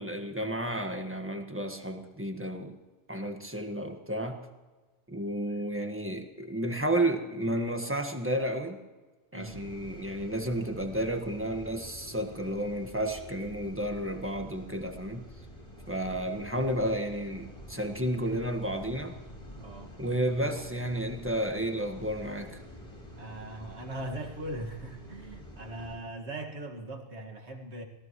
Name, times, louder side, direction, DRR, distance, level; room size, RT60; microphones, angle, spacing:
voice 1, 0.0-2.8 3.1-4.4 5.1-8.8 9.3-15.2 15.9-19.1 20.0-22.6, right 1 dB, 10° right, 4 dB, 1.5 m, -32 dB
voice 2, 9.3-9.6 19.6-19.9 23.2-27.8, right 1 dB, 75° right, 2 dB, 2.2 m, -40 dB
sound 1, 9.4-26.0, equal, 30° left, 4.4 m, -48 dB
25.5 x 18.0 x 3.1 m, 1.3 s
omnidirectional pair, 1.1 m